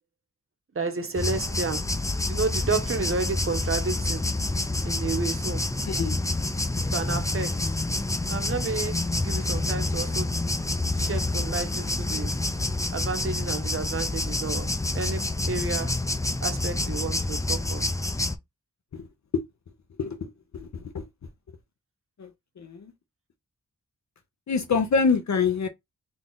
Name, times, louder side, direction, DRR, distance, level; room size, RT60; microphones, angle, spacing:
voice 1, 0.7-1.9 2.3-4.2 4.8-5.6 6.9-7.7 8.3-10.3 11.0-12.3 12.9-14.7 14.9-15.9 16.4-17.8, right 4 dB, 40° right, 0.9 m, -31 dB
sound 1, 1.2-18.4, left 2 dB, 10° left, 0.5 m, -28 dB
voice 2, 5.8-6.2 18.9-19.0 20.0-21.0 22.2-22.3 22.6-22.9 24.5-25.7, left 5 dB, 55° left, 0.7 m, -26 dB
3.9 x 2.4 x 3.8 m
wide cardioid pair, 120°, 33 cm